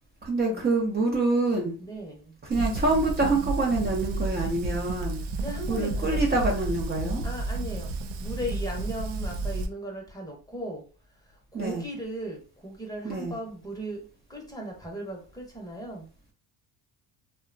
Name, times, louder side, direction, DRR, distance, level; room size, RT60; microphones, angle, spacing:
voice 1, 0.2-1.8 2.5-5.2 5.7-7.2 11.5-11.9 13.0-13.4, right 2 dB, 25° right, 0.6 m, -26 dB
voice 2, 1.8-2.3 5.4-6.2 7.2-7.9 8.2-10.8 11.5-14.0 14.3-16.0, right 1 dB, 10° left, 0.8 m, -37 dB
Fire, 2.5-9.7, right 2 dB, 90° right, 0.6 m, -31 dB
2.7 x 2.2 x 2.5 m
cardioid pair, 100°, 42 cm